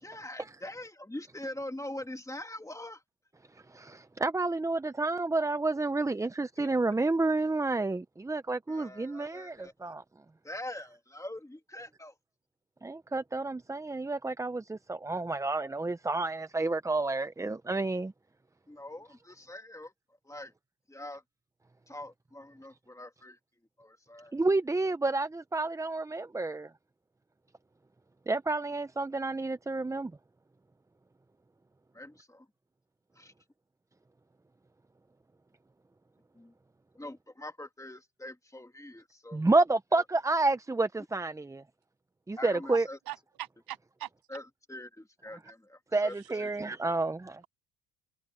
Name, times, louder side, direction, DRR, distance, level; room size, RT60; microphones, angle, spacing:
voice 1, 0.0-3.0 6.6-6.7 8.7-9.7 10.4-12.1 18.7-19.9 20.3-20.5 20.9-21.2 21.9-23.4 23.8-24.4 31.9-32.5 33.2-33.3 36.3-36.5 36.9-39.5 42.4-43.0 44.3-44.4 44.7-46.5, left 1 dB, 5° left, 2.2 m, -43 dB
voice 2, 3.7-10.0 12.8-18.1 24.3-26.7 28.3-30.1 39.3-41.6 42.3-42.9 45.9-47.4, right 2 dB, 10° right, 0.4 m, -30 dB
voice 3, 43.1-44.1 46.2-46.3, right 14 dB, 60° right, 0.6 m, -42 dB
cardioid pair, 105°, 42 cm